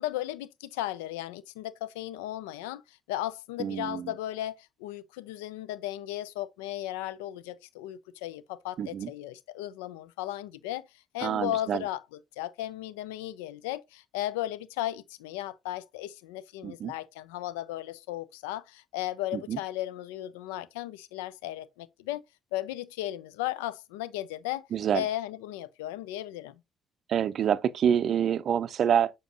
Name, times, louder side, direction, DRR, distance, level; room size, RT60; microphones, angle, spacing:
voice 1, 0.0-10.9 11.1-12.0 12.4-22.2 22.5-24.7 24.9-26.6, left 14 dB, 85° left, 0.4 m, -35 dB
voice 2, 3.6-4.1 8.8-9.1 11.2-11.8 16.6-16.9 19.3-19.6 24.7-25.0 27.1-29.1, right 9 dB, 60° right, 0.4 m, -27 dB
7.0 x 5.1 x 2.7 m
hypercardioid pair, 50°, 0 cm